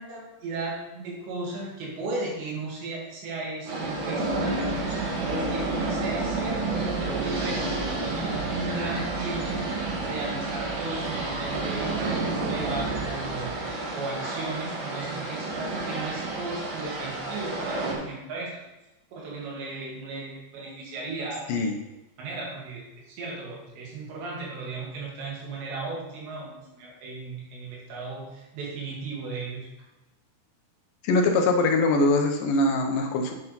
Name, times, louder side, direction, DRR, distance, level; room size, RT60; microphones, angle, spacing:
voice 1, 0.0-9.7 10.0-18.6 19.1-21.4 22.2-29.7, right 3 dB, 85° right, -2 dB, 4.5 m, -36 dB
sound 1, 3.7-17.9, right 2 dB, 55° right, 3.6 m, -30 dB
voice 2, 31.0-33.3, left 2 dB, 75° left, 3 dB, 2.1 m, -22 dB
8.8 x 8.3 x 4.0 m, 1.0 s
omnidirectional pair, 4.9 m